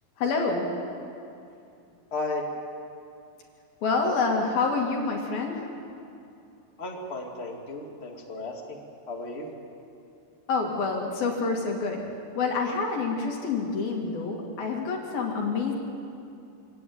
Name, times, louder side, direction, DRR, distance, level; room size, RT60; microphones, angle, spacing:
voice 1, 0.2-0.7 3.8-5.7 10.5-12.0 12.4-15.7, left 4 dB, 55° left, 0 dB, 3.9 m, -27 dB
voice 2, 2.1-2.5 6.8-9.5, left 2 dB, 25° left, 1 dB, 1.4 m, -34 dB
26.5 x 17.5 x 9.5 m, 2.6 s
omnidirectional pair, 5.3 m